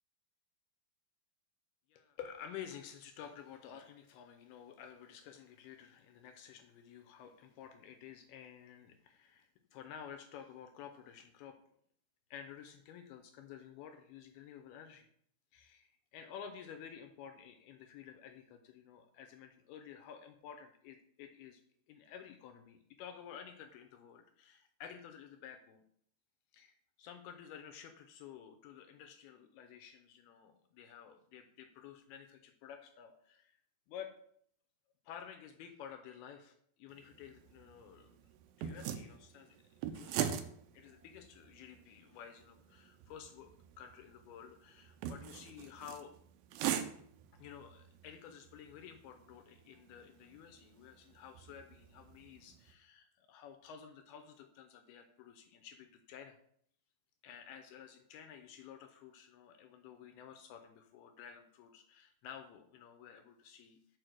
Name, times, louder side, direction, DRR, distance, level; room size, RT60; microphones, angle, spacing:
voice 1, 1.9-11.6 12.3-15.1 15.5-21.6 21.9-25.8 26.5-33.6 33.9-34.1 35.1-38.3 38.6-39.6 39.9-46.2 47.4-56.4 57.2-64.0, left 8 dB, 85° left, 5 dB, 2.3 m, -52 dB
sound 1, 36.9-52.7, right 10 dB, 90° right, 2.1 m, -44 dB
6.5 x 4.9 x 6.1 m, 0.65 s
omnidirectional pair, 5.0 m